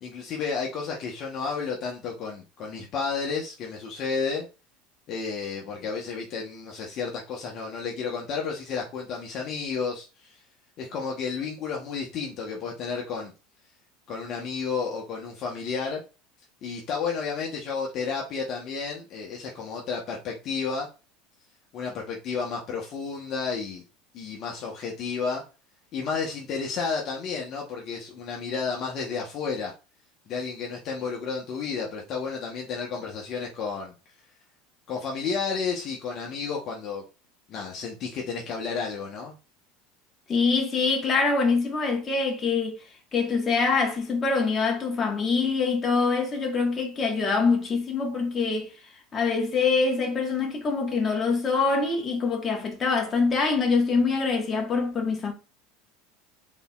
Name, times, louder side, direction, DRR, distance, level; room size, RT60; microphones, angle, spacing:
voice 1, 0.0-4.5 5.1-10.4 10.8-13.3 14.1-16.0 16.6-20.9 21.7-23.8 24.1-25.4 25.9-29.7 30.3-33.9 34.9-37.0 37.5-39.3, left 5 dB, 50° left, 1.1 m, -32 dB
voice 2, 40.3-42.8 43.1-48.7 49.1-55.3, left 4 dB, 30° left, 1.6 m, -24 dB
4.1 x 3.8 x 2.4 m
hypercardioid pair, 85°, 0 cm